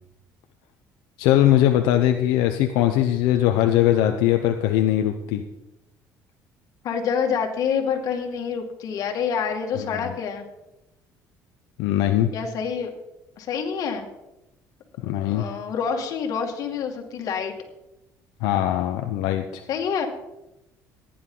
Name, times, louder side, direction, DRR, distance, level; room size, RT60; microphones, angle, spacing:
voice 1, 1.2-5.4 9.9-10.1 11.8-12.3 15.0-15.4 18.4-19.6, left 12 dB, 85° left, 5 dB, 0.8 m, -21 dB
voice 2, 6.8-10.5 12.3-12.9 13.4-14.1 15.3-17.5 19.7-20.1, left 6 dB, 60° left, 3 dB, 2.3 m, -27 dB
15.5 x 10.5 x 3.9 m, 0.93 s
cardioid pair, 115°, 7 cm